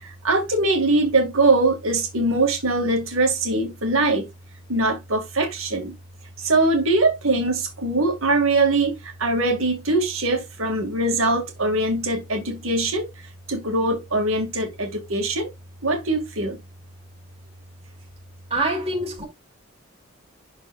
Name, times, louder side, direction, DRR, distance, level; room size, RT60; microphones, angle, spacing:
voice 1, 0.0-4.3 4.7-5.9 6.4-13.1 13.5-15.5 15.8-16.6, right 2 dB, 75° right, 2.2 m, -22 dB
voice 2, 18.5-19.3, right 2 dB, 30° right, 2.7 m, -25 dB
12.5 x 4.2 x 2.5 m
head